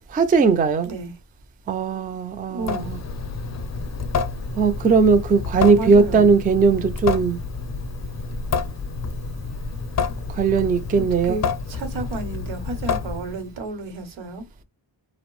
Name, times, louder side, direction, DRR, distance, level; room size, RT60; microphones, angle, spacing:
voice 1, 0.1-0.9 1.7-3.0 4.6-7.4 10.3-11.4, right 5 dB, 20° right, 0.3 m, -18 dB
voice 2, 2.5-2.9 5.7-6.3 11.0-14.4, right 3 dB, 85° right, 0.9 m, -32 dB
Water tap faucet / Sink (filling or washing) / Drip, 2.6-13.5, left 4 dB, 35° left, 0.5 m, -29 dB
2.5 x 2.0 x 3.0 m
cardioid pair, 75°, 45 cm